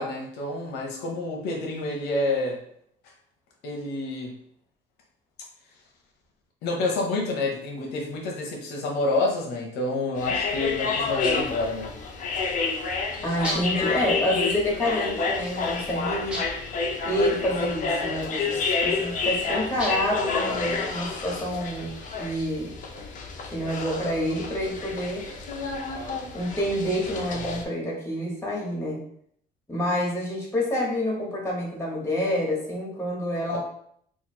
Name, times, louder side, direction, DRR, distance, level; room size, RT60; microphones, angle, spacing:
voice 1, 0.0-2.6 3.6-4.3 6.6-11.9 33.5-33.6, left 2 dB, 80° left, 0 dB, 0.8 m, -28 dB
sound 1, 10.2-27.6, left 4 dB, 50° left, 0.6 m, -29 dB
voice 2, 13.2-16.4 17.0-21.9 22.2-22.7 23.5-25.2 26.3-29.0 29.7-33.6, equal, 15° left, -4 dB, 1.4 m, -28 dB
sound 2, 13.4-13.9 16.3-16.8 19.8-20.2, equal, 5° right, 1.0 m, -33 dB
2.9 x 2.4 x 4.3 m, 0.67 s
cardioid pair, 110°, 17 cm